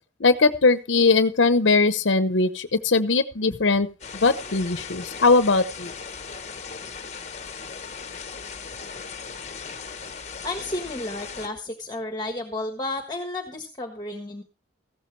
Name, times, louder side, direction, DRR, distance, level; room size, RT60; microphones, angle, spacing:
voice 1, 0.2-3.9 4.1-5.9, left 3 dB, 85° left, 12 dB, 0.9 m, -20 dB
sound 1, 4.0-11.5, left 5 dB, 35° left, 1.1 m, -38 dB
voice 2, 10.4-14.4, left 2 dB, 20° left, 5 dB, 1.4 m, -32 dB
15.5 x 13.0 x 3.2 m, 0.32 s
head